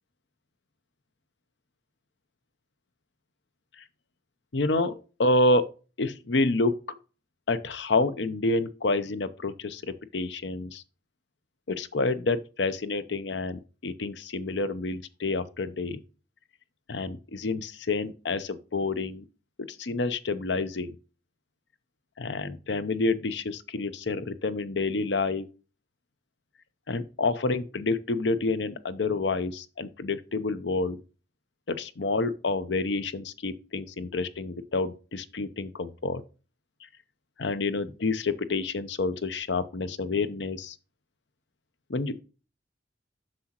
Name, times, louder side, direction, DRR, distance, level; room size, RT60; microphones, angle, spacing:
voice 1, 4.5-5.7 6.0-7.0 7.5-10.8 11.7-16.0 16.9-19.2 19.6-20.9 22.2-25.5 26.9-31.0 31.7-36.2 37.4-40.7 41.9-42.2, left 3 dB, 75° left, 0.7 m, -28 dB
7.6 x 6.3 x 2.9 m
head